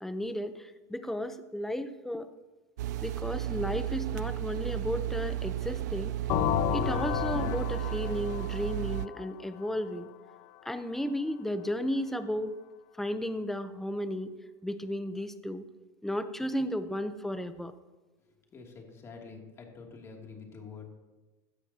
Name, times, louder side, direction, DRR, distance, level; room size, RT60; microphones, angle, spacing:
voice 1, 0.0-2.3 3.0-6.1 6.7-10.1 10.6-12.5 13.0-14.3 14.6-15.6 16.0-17.7, left 1 dB, 5° left, 10 dB, 0.8 m, -34 dB
sound 1, 2.8-9.1, right 13 dB, 75° right, 0.4 m, -33 dB
sound 2, 6.3-10.0, left 15 dB, 50° left, 0.5 m, -32 dB
voice 2, 18.2-20.9, left 5 dB, 30° left, 0 dB, 2.8 m, -47 dB
16.5 x 13.0 x 2.9 m, 1.2 s
supercardioid pair, 110°, 9 cm